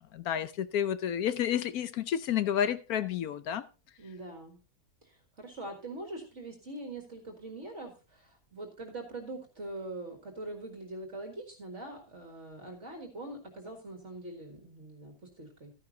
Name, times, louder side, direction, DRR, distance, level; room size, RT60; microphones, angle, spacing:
voice 1, 0.1-3.6, left 9 dB, 75° left, 13 dB, 1.1 m, -30 dB
voice 2, 4.0-4.6 5.0-15.7, right 2 dB, 50° right, 3 dB, 2.1 m, -43 dB
13.0 x 10.5 x 2.7 m, 0.31 s
omnidirectional pair, 1.6 m